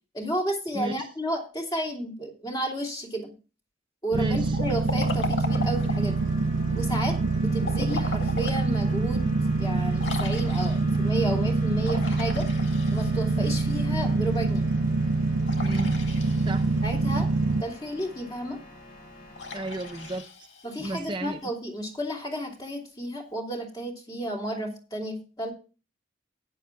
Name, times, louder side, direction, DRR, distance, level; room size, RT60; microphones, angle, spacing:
voice 1, 0.1-3.3 4.0-6.2 6.7-9.3 9.6-12.5 12.9-14.7 16.8-17.3 17.6-18.6 20.6-25.5, right 1 dB, 20° left, 0 dB, 2.8 m, -32 dB
voice 2, 0.7-1.1 4.2-4.6 15.6-16.0 16.4-16.7 19.5-20.5 20.8-21.4, right 1 dB, 25° right, 6 dB, 0.6 m, -33 dB
sound 1, 4.1-17.6, right 3 dB, 90° right, 0.6 m, -25 dB
Liquid, 4.5-6.1 7.6-8.7 9.1-9.2 10.0-11.0 11.8-13.4 15.4-16.8 19.3-21.0, left 3 dB, 75° left, 2.0 m, -37 dB
sound 2, 5.5-20.2, left 1 dB, 45° left, 3.4 m, -45 dB
15.5 x 9.7 x 2.3 m, 0.33 s
head